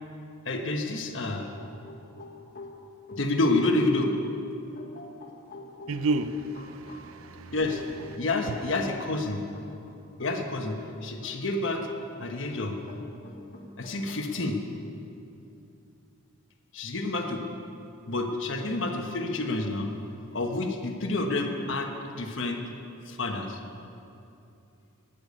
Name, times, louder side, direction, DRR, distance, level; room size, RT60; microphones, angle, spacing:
voice 1, 0.4-1.5 3.1-4.1 7.5-7.8 8.2-9.5 10.2-11.9 12.2-12.8 13.8-14.6 16.7-17.4 18.1-19.9 20.3-22.6 23.1-23.6, left 2 dB, 60° left, 1.2 m, -29 dB
sound 1, 1.2-7.0 7.7-11.7 12.0-14.6, left 2 dB, 40° left, 1.3 m, -46 dB
voice 2, 5.9-7.9 8.5-8.7, right 2 dB, 80° right, 0.6 m, -32 dB
14.0 x 6.8 x 9.5 m
head